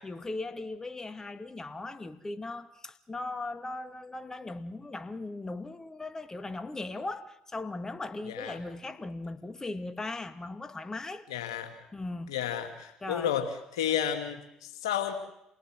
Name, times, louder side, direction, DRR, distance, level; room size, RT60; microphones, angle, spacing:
voice 1, 0.0-11.3 11.9-12.3 13.0-13.3, left 2 dB, 20° left, 2.1 m, -38 dB
voice 2, 8.3-8.6 11.3-11.8 12.3-15.1, left 9 dB, 80° left, 2.8 m, -32 dB
28.0 x 18.5 x 7.6 m
hypercardioid pair, 55°, 3 cm